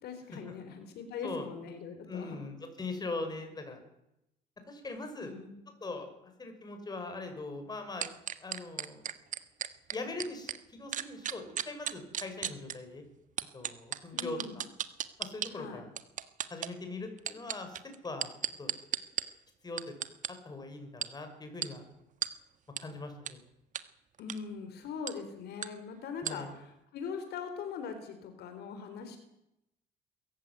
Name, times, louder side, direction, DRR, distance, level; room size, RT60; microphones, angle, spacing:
voice 1, 0.0-2.4 5.2-5.6 14.1-14.6 15.5-15.8 24.2-29.2, left 6 dB, 75° left, 7 dB, 4.0 m, -41 dB
voice 2, 2.0-3.8 4.7-5.3 5.8-6.1 6.4-8.1 8.4-9.0 9.9-13.0 13.5-14.6 15.2-15.9 16.5-17.8 18.0-18.3 18.6-18.7 19.6-19.8 20.4-21.8 22.8-23.4 26.2-26.5, left 3 dB, 25° left, 6 dB, 6.0 m, -41 dB
sound 1, 8.0-10.6 10.9-12.7 13.4-15.5 16.0-16.7 17.2-19.2 19.8-20.3 21.0-21.1 21.6-21.7 22.2-22.3 22.8-22.9 23.3-23.4 23.7-23.8 24.2-24.4 25.1-25.2 25.6-25.7 26.2-26.3, right 9 dB, 50° right, 1.5 m, -34 dB
22.5 x 15.0 x 9.6 m, 0.85 s
cardioid pair, 110°, 17 cm